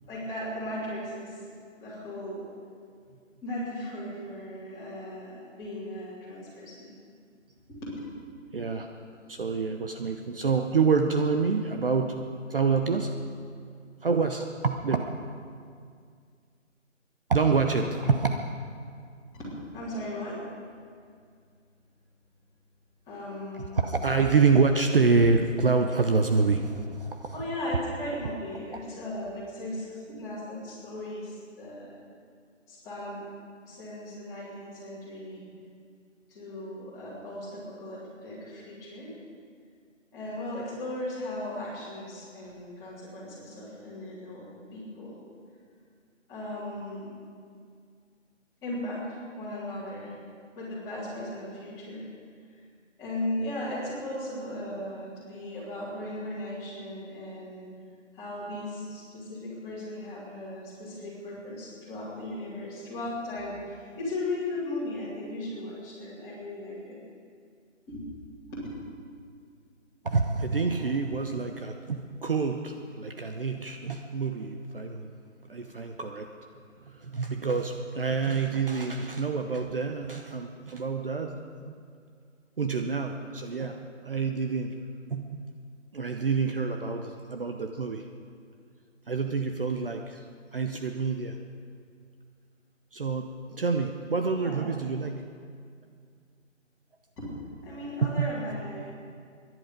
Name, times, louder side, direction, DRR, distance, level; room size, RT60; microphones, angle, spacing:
voice 1, 0.1-1.4 1.8-2.5 3.4-6.9 7.8-7.9 19.3-20.4 23.1-23.8 27.3-31.9 32.7-33.2 33.6-35.4 36.3-39.1 40.1-45.2 46.3-47.2 48.6-50.1 50.5-52.0 53.0-57.6 58.1-67.0 67.9-68.0 68.5-68.6 70.7-70.8 94.4-94.6 97.2-97.3 97.6-98.9, left 1 dB, 10° left, -10 dB, 3.3 m, -37 dB
voice 2, 8.5-8.9 9.3-13.1 14.0-15.0 17.3-18.3 23.6-27.4 70.0-75.1 75.5-76.3 76.8-81.7 82.6-84.8 85.1-85.5 85.9-88.1 89.1-90.2 90.5-91.4 92.9-95.2 98.0-98.3, right 4 dB, 45° right, 5 dB, 0.8 m, -27 dB
23.5 x 11.0 x 5.2 m, 2.2 s
figure-of-eight pair, 165°, 38 cm